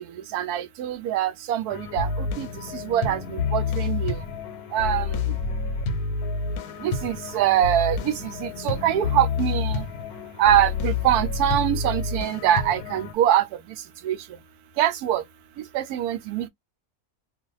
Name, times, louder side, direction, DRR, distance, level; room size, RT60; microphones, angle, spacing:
voice 1, 0.3-2.5 2.7-4.2 4.7-5.2 6.8-9.8 10.4-13.5 14.0-14.2 14.8-15.2 15.7-16.5, right 11 dB, 90° right, 1.1 m, -24 dB
sound 1, 1.7-13.1, left 5 dB, 80° left, 1.1 m, -29 dB
2.6 x 2.3 x 3.1 m
omnidirectional pair, 1.6 m